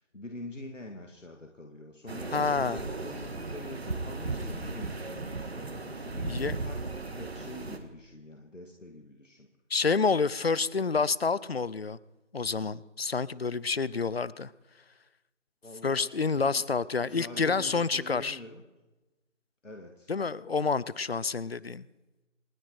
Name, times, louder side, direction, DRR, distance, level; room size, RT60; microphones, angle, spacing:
voice 1, 0.0-9.5 15.6-16.6 17.0-18.6 19.6-20.1, left 2 dB, 80° left, 3 dB, 2.2 m, -45 dB
sound 1, 2.1-7.8, right 3 dB, 55° right, 1.7 m, -36 dB
voice 2, 2.3-2.8 6.2-6.6 9.7-12.0 12.3-14.5 15.8-18.4 20.1-21.8, left 4 dB, 55° left, 21 dB, 0.6 m, -28 dB
29.0 x 9.8 x 4.4 m, 1.1 s
figure-of-eight pair, 160°, 37 cm